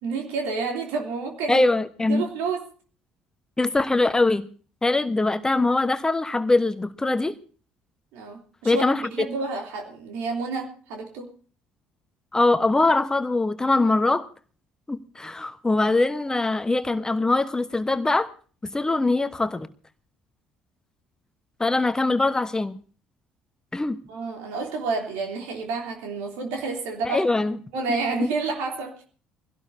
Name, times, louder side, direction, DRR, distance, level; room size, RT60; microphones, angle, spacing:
voice 1, 0.0-1.7 2.1-2.7 8.1-11.3 24.1-27.3 27.7-29.0, right 4 dB, 60° right, 3.2 m, -30 dB
voice 2, 1.5-2.3 3.6-4.5 4.8-7.3 8.6-9.0 12.3-14.3 14.9-18.3 18.6-19.7 21.6-22.8 23.7-24.0 27.0-27.6 28.2-28.3, left 2 dB, 15° left, 1.1 m, -22 dB
23.5 x 17.0 x 2.7 m
figure-of-eight pair, 50°, 4 cm